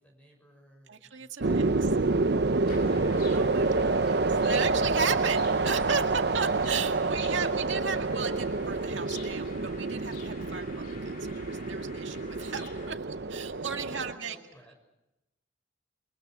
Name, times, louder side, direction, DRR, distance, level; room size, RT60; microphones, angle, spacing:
voice 1, 0.0-3.4 13.8-14.7, right 1 dB, 5° left, 1 dB, 6.5 m, -55 dB
voice 2, 0.9-1.7 3.3-14.4, right 5 dB, 80° right, 5 dB, 2.0 m, -35 dB
sound 1, 1.4-14.1, right 3 dB, 60° right, 0.8 m, -28 dB
sound 2, 2.7-12.9, left 4 dB, 50° left, 3.4 m, -49 dB
29.5 x 23.0 x 6.2 m, 0.95 s
head